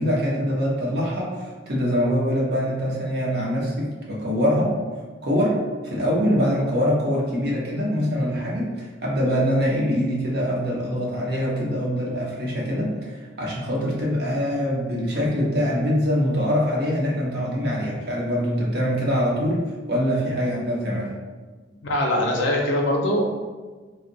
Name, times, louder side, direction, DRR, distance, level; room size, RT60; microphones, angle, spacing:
voice 1, 0.0-4.7 5.2-5.6 5.8-19.6 19.9-21.1, equal, 55° right, -3 dB, 0.7 m, -24 dB
voice 2, 21.8-23.3, left 1 dB, 80° left, -1 dB, 0.4 m, -22 dB
2.6 x 2.1 x 3.8 m, 1.4 s
head